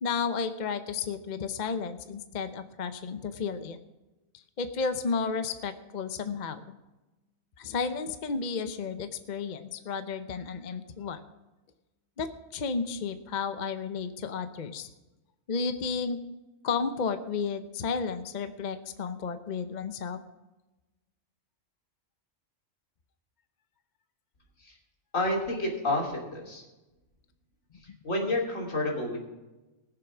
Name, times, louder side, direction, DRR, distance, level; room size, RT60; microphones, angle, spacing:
voice 1, 0.0-3.8 4.3-6.6 7.6-11.2 12.2-14.9 15.5-16.2 16.6-20.2 27.9-28.0, left 5 dB, 40° left, 10 dB, 0.8 m, -32 dB
voice 2, 25.1-26.6 28.0-29.2, left 1 dB, 75° left, 0 dB, 3.2 m, -29 dB
19.0 x 7.1 x 6.0 m, 1.1 s
omnidirectional pair, 1.4 m